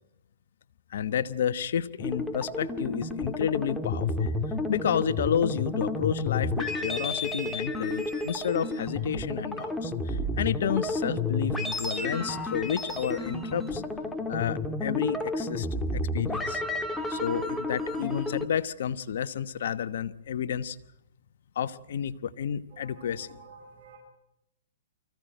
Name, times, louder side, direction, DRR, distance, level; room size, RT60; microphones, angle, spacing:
voice 1, 0.9-4.3 4.7-13.8 14.3-15.7 15.9-16.6 17.1-20.8 21.5-23.4, left 8 dB, 65° left, 14 dB, 1.1 m, -31 dB
sound 1, 2.0-18.4, left 2 dB, 5° left, 1.8 m, -31 dB
voice 2, 22.7-24.0, right 4 dB, 40° right, -1 dB, 6.1 m, -51 dB
24.5 x 15.5 x 9.1 m, 0.86 s
hypercardioid pair, 135°, 0 cm